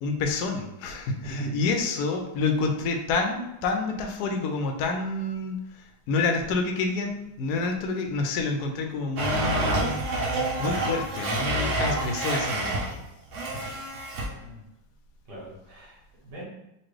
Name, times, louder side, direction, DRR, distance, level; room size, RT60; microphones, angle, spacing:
voice 1, 0.0-10.3 10.6-13.0 13.5-13.7, left 4 dB, 75° left, 4 dB, 0.9 m, -28 dB
voice 2, 1.2-1.6 10.1-10.5 14.2-14.6 15.3-16.4, right 2 dB, 60° right, -6 dB, 1.9 m, -39 dB
Domestic sounds home sounds, 9.2-13.0 13.3-14.3, right 2 dB, 85° right, 0.6 m, -28 dB
4.1 x 2.5 x 3.2 m, 0.88 s
omnidirectional pair, 2.1 m